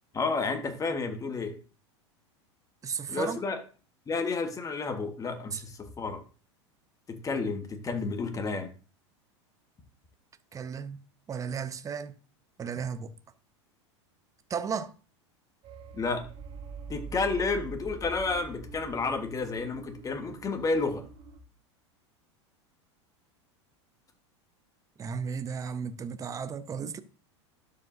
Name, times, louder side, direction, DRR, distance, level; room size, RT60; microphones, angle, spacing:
voice 1, 0.1-1.5 3.1-3.6 4.1-6.2 7.1-8.7 15.9-16.2 16.9-21.0, left 4 dB, 20° left, 1.5 m, -31 dB
voice 2, 2.8-3.4 5.5-5.6 10.5-11.0 11.3-12.2 12.6-13.1 14.5-14.9 25.0-27.0, right 6 dB, 20° right, 0.7 m, -34 dB
sound 1, 15.6-21.4, right 4 dB, 35° right, 1.3 m, -44 dB
12.0 x 5.0 x 2.7 m
hypercardioid pair, 95°, 15 cm